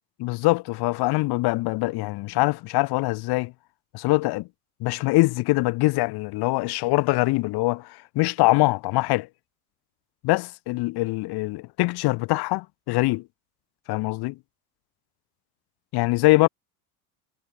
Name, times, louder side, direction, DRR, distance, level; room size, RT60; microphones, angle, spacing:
voice 1, 0.2-3.5 3.9-4.5 4.8-7.9 8.1-9.3 10.2-13.2 13.9-14.4 15.9-16.5, left 21 dB, 55° left, 3.3 m, -23 dB
hypercardioid pair, 90°, 45 cm